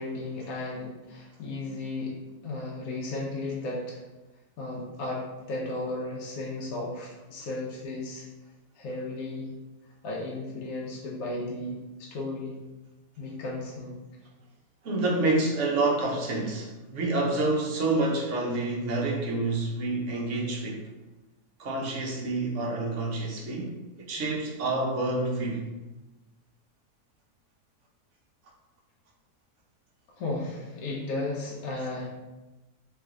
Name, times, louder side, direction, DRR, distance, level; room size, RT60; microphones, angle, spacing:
voice 1, 0.0-4.0 4.6-8.3 8.7-9.5 10.0-12.6 13.2-14.0 30.2-32.1, left 2 dB, 70° left, -3 dB, 1.1 m, -34 dB
voice 2, 14.8-20.8 21.6-25.7, right 2 dB, 60° right, -1 dB, 1.0 m, -28 dB
3.3 x 3.2 x 3.6 m, 1.1 s
omnidirectional pair, 1.6 m